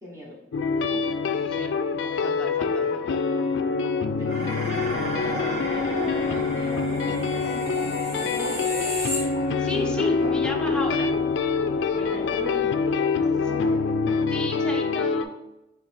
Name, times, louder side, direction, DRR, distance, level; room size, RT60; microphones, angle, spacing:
voice 1, 0.0-0.4 4.2-4.9 5.2-9.3 11.9-14.0, equal, 15° right, -5 dB, 1.0 m, -38 dB
sound 1, 0.5-15.2, left 4 dB, 85° left, 0.3 m, -25 dB
voice 2, 0.9-1.7 2.0-3.2 9.6-11.1 14.3-15.3, left 2 dB, 5° left, 1 dB, 0.5 m, -34 dB
Dishes pots and pans, 4.3-13.1, right 1 dB, 80° right, 1.5 m, -38 dB
sound 2, 6.9-9.8 10.2-10.4, equal, 60° right, 1.6 m, -35 dB
4.0 x 3.1 x 4.3 m, 0.93 s
head